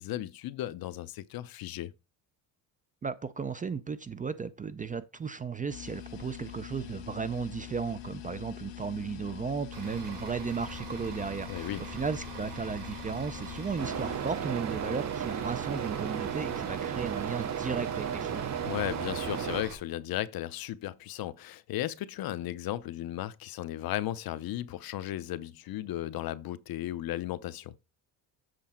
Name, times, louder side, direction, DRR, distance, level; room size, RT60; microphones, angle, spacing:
voice 1, 0.0-1.9 11.5-11.9 18.6-27.7, left 14 dB, 55° left, 0.7 m, -35 dB
voice 2, 3.0-18.5, right 5 dB, 20° right, 0.4 m, -35 dB
sound 1, 5.7-14.2, left 12 dB, 75° left, 1.6 m, -44 dB
Bus / Idling, 9.7-19.7, right 3 dB, 90° right, 3.2 m, -43 dB
sound 2, 13.8-19.6, right 8 dB, 40° right, 0.8 m, -34 dB
7.8 x 4.0 x 5.7 m
cardioid pair, 100°, 43 cm